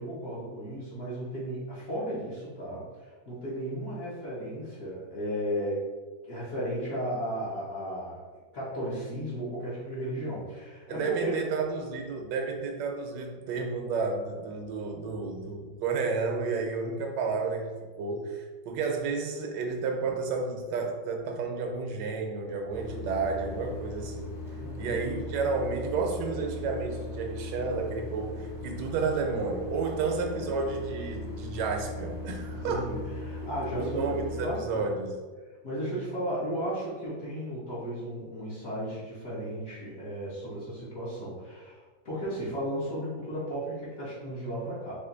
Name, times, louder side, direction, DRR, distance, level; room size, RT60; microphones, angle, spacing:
voice 1, 0.0-5.9 6.3-8.2 8.5-11.3 24.6-24.9 30.0-30.5 32.5-34.9 35.6-41.8 42.0-44.9, equal, 50° left, -10 dB, 1.4 m, -35 dB
voice 2, 10.9-17.7 18.0-24.3 24.8-32.9 33.4-33.5 33.7-35.2, right 4 dB, 75° right, 3 dB, 1.3 m, -31 dB
sound 1, 22.7-34.5, left 1 dB, 5° right, 0.4 m, -39 dB
4.3 x 2.6 x 3.8 m, 1.4 s
omnidirectional pair, 2.0 m